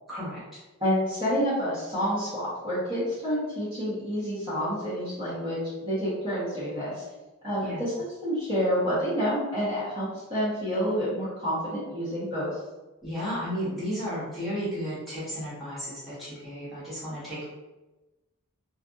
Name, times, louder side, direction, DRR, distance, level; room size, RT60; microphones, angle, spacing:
voice 1, 0.1-0.6 7.6-7.9 13.0-17.4, equal, ahead, -12 dB, 1.0 m, -33 dB
voice 2, 0.8-7.0 7.4-7.9 8.2-12.6, equal, 25° right, -11 dB, 0.8 m, -28 dB
2.5 x 2.5 x 2.3 m, 1.1 s
head